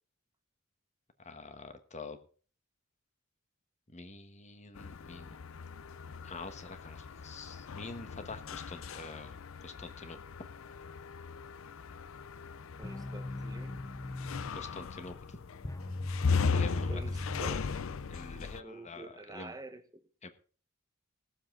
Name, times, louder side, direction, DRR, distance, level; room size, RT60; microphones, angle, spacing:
voice 1, 1.2-2.2 3.9-5.3 6.2-10.2 14.5-15.4 16.5-17.2 18.1-19.5 20.2-20.3, left 3 dB, 35° left, 1.3 m, -46 dB
sound 1, 4.8-18.6, left 5 dB, 70° left, 0.5 m, -38 dB
sound 2, 12.8-18.4, left 2 dB, 15° left, 0.5 m, -39 dB
voice 2, 12.8-13.8 16.9-17.9 18.3-20.1, right 2 dB, 20° right, 1.0 m, -48 dB
20.0 x 7.3 x 3.8 m
head